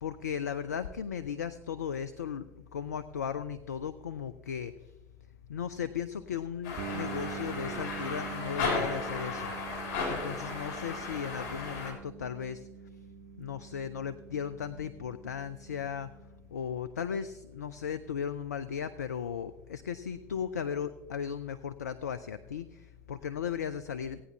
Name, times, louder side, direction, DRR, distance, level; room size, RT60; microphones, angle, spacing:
voice 1, 0.0-4.9 5.5-12.7 13.4-16.1 16.5-24.2, left 7 dB, 80° left, 13 dB, 0.4 m, -36 dB
sound 1, 6.6-11.9, left 3 dB, 60° left, 3.5 m, -35 dB
sound 2, 6.8-16.5, right 9 dB, 60° right, 0.7 m, -45 dB
17.5 x 9.2 x 2.8 m, 0.99 s
figure-of-eight pair, 60°, 9 cm